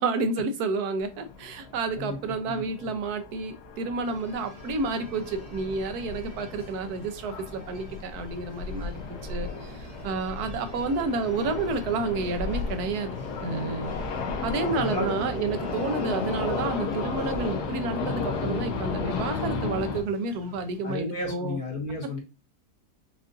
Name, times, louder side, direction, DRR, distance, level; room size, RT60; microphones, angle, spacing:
voice 1, 0.0-8.9 9.3-13.2 13.4-14.0 14.4-21.6 22.0-22.2, right 3 dB, 80° right, 1.2 m, -30 dB
sound 1, 1.0-20.0, left 4 dB, 90° left, 1.4 m, -34 dB
voice 2, 2.5-2.9 14.8-15.1 20.8-22.2, left 2 dB, 65° left, 1.6 m, -33 dB
sound 2, 4.0-21.0, right 1 dB, 30° right, 0.8 m, -48 dB
5.4 x 2.5 x 2.5 m
omnidirectional pair, 1.7 m